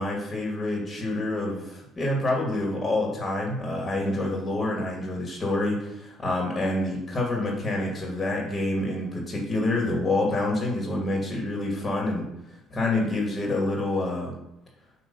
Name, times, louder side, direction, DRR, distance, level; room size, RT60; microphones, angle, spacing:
voice 1, 0.0-12.3 12.7-14.4, left 2 dB, 30° left, -1 dB, 2.0 m, -27 dB
8.1 x 3.0 x 5.4 m, 0.87 s
supercardioid pair, 70°, 0 cm